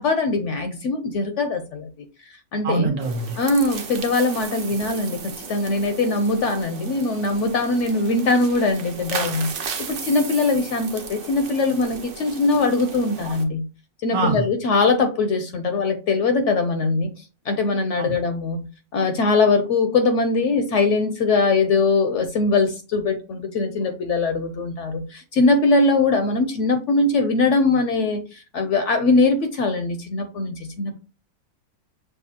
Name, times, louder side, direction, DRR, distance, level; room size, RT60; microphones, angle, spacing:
voice 1, 0.0-1.9 2.5-2.9 3.4-13.6 14.0-18.7 18.9-31.0, left 3 dB, 65° left, 7 dB, 0.8 m, -21 dB
voice 2, 2.6-3.4 14.1-14.4 18.0-18.1, right 3 dB, 70° right, 2 dB, 1.4 m, -23 dB
sound 1, 3.0-13.4, right 5 dB, 55° right, 0.6 m, -35 dB
6.6 x 2.3 x 2.7 m, 0.34 s
omnidirectional pair, 1.6 m